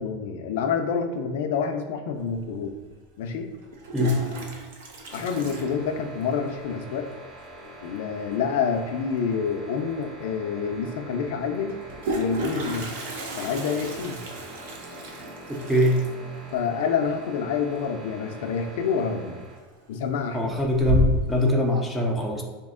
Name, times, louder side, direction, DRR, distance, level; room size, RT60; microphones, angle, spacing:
voice 1, 0.0-2.8 3.2-3.5 5.1-7.1 7.8-11.8 12.1-12.9 13.4-14.2 16.5-19.4 19.9-20.5, left 6 dB, 60° left, 5 dB, 0.4 m, -27 dB
Toilet flush, 2.3-2.4 3.6-6.4 6.7-6.8 7.1-7.2 7.4-7.8 9.6-9.7 10.0-10.1 11.6-18.3 18.6-19.1 19.5-20.0 20.4-21.4, equal, 60° right, 0.7 m, -32 dB
sound 1, 5.1-19.6, equal, 25° right, 0.8 m, -44 dB
voice 2, 15.5-16.0 20.3-22.4, left 1 dB, ahead, 0 dB, 0.4 m, -22 dB
4.1 x 2.9 x 3.6 m, 1.4 s
supercardioid pair, 180°, 0 cm